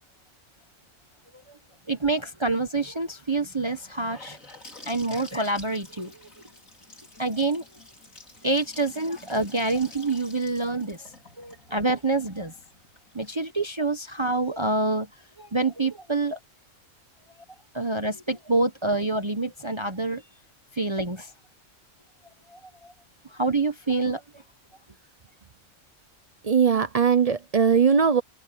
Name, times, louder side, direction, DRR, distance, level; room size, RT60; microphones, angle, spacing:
voice 1, 1.9-4.4 4.9-6.1 7.2-7.6 8.4-11.0 11.4-12.5 13.1-15.1 15.4-16.4 17.7-20.2 20.7-21.3 22.5-22.9 23.3-24.2, right 3 dB, 25° right, 0.9 m, -26 dB
Gurgling / Sink (filling or washing) / Bathtub (filling or washing), 3.7-13.5, left 2 dB, 85° left, 5.9 m, -49 dB
voice 2, 26.4-28.2, right 6 dB, 45° right, 0.5 m, -20 dB
open air
omnidirectional pair, 1.4 m